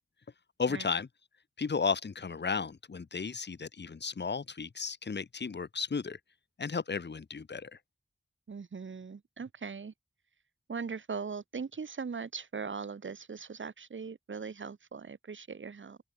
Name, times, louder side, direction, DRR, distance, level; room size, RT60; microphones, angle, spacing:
voice 1, 0.6-1.1 1.6-6.2 6.6-7.7, left 5 dB, 55° left, 0.6 m, -34 dB
voice 2, 8.5-9.9 10.7-16.0, right 5 dB, 65° right, 0.6 m, -40 dB
open air
wide cardioid pair, 45°, 21 cm